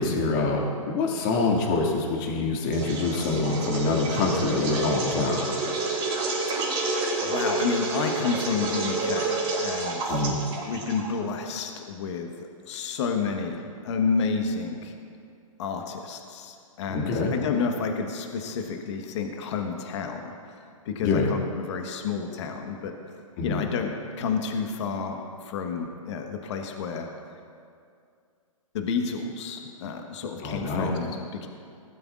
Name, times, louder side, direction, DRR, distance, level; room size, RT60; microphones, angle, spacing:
voice 1, 0.0-5.5 10.1-10.4 16.9-17.3 21.0-21.3 23.4-23.6 30.4-30.9, left 3 dB, 35° left, 0 dB, 2.2 m, -25 dB
sound 1, 2.7-11.3, right 3 dB, 25° right, 3.6 m, -29 dB
voice 2, 7.2-10.2 10.6-12.3 12.6-14.9 15.6-22.9 23.4-23.9 24.2-27.1 28.7-31.5, left 5 dB, 50° left, 4 dB, 1.3 m, -30 dB
19.5 x 12.5 x 2.5 m, 2.3 s
hypercardioid pair, 130°, 18 cm